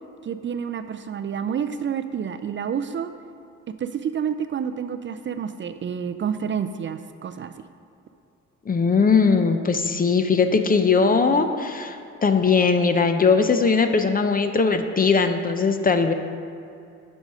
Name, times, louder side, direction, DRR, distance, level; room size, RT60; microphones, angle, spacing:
voice 1, 0.2-3.1 3.8-7.5, right 7 dB, 40° right, 9 dB, 0.4 m, -29 dB
voice 2, 8.7-12.0 12.2-16.1, left 5 dB, 30° left, 7 dB, 0.6 m, -20 dB
8.1 x 6.3 x 5.5 m, 2.6 s
cardioid pair, 90°, 30 cm